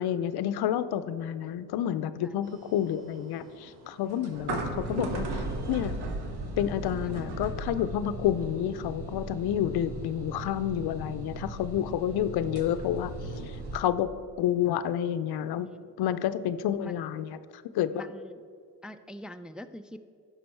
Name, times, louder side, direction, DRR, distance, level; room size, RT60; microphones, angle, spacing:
voice 1, 0.0-6.0 6.6-13.1 13.5-14.1 14.4-15.7 16.0-17.4 17.7-18.0, left 10 dB, 75° left, 13 dB, 0.5 m, -29 dB
sound 1, 2.4-13.8, right 2 dB, 80° right, 1.2 m, -37 dB
voice 2, 4.0-4.4 15.6-15.9 16.8-17.3 17.9-18.4 18.8-20.0, equal, ahead, 9 dB, 0.3 m, -45 dB
10.5 x 6.2 x 4.4 m, 2.3 s
supercardioid pair, 55°, 39 cm